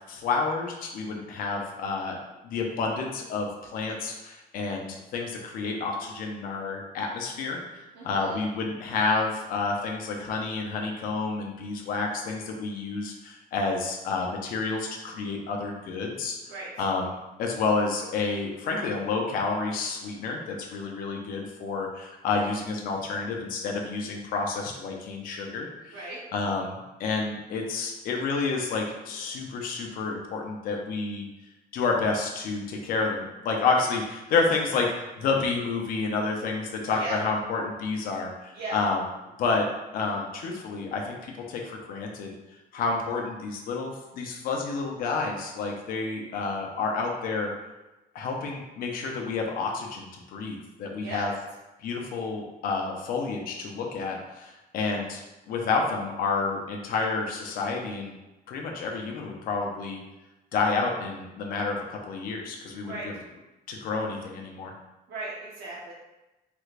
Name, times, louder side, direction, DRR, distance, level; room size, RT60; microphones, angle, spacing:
voice 1, 0.0-2.2 2.4-16.4 16.8-26.0 26.3-31.3 31.7-39.1 39.4-42.3 42.7-47.5 48.1-51.3 51.8-58.1 58.5-60.0 60.5-63.1 63.7-64.7, left 4 dB, 65° left, 1 dB, 0.5 m, -29 dB
voice 2, 7.9-8.4 16.5-16.7 25.9-26.2 36.9-37.1 38.5-38.8 51.0-51.3 62.8-63.1 65.1-65.9, right 2 dB, 80° right, -6 dB, 0.8 m, -37 dB
3.3 x 3.2 x 2.4 m, 1.0 s
cardioid pair, 175°, 16 cm